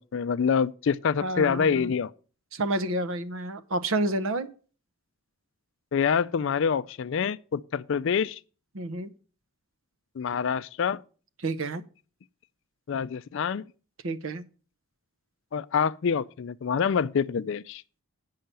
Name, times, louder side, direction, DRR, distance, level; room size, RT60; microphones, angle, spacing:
voice 1, 0.0-2.1 5.9-8.4 10.2-11.0 12.9-13.6 15.5-17.8, left 6 dB, 55° left, 0.3 m, -26 dB
voice 2, 1.2-1.9 2.5-4.5 8.7-9.1 11.4-11.8 14.0-14.4, right 2 dB, 65° right, 0.7 m, -29 dB
8.9 x 5.7 x 6.7 m
head